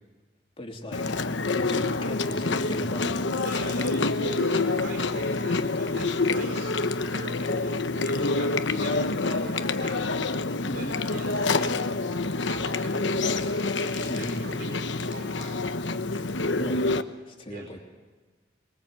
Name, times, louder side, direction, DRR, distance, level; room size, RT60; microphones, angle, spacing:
voice 1, 0.6-1.2 1.6-3.2 8.2-8.5 10.6-11.0 14.1-14.3 16.1-16.9 17.3-17.8, left 1 dB, 30° left, 2 dB, 3.0 m, -38 dB
Chewing mastication, 0.9-17.0, left 3 dB, 75° left, 1.1 m, -27 dB
voice 2, 3.4-6.8 7.1-10.2 10.7-11.7 12.4-15.6 17.5-17.7, right 2 dB, 55° right, 1 dB, 4.9 m, -42 dB
23.5 x 22.5 x 7.6 m, 1.3 s
head